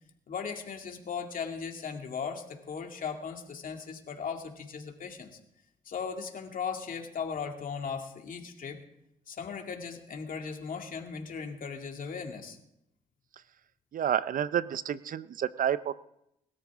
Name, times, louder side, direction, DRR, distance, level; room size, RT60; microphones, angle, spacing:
voice 1, 0.3-5.4 5.9-8.8 9.3-12.6, left 6 dB, 55° left, 3 dB, 2.3 m, -37 dB
voice 2, 13.9-15.9, right 9 dB, 60° right, 16 dB, 0.6 m, -29 dB
21.5 x 13.0 x 3.6 m, 0.82 s
cardioid pair, 70°, 16 cm